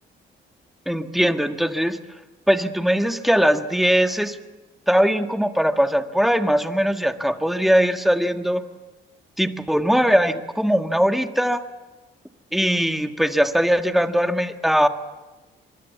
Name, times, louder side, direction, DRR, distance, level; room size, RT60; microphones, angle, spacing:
voice 1, 0.8-2.0 2.5-4.4 4.9-8.6 9.4-11.6 12.5-14.9, equal, ahead, 7 dB, 1.7 m, -20 dB
24.5 x 21.0 x 8.5 m, 1.2 s
cardioid pair, 90°, 20 cm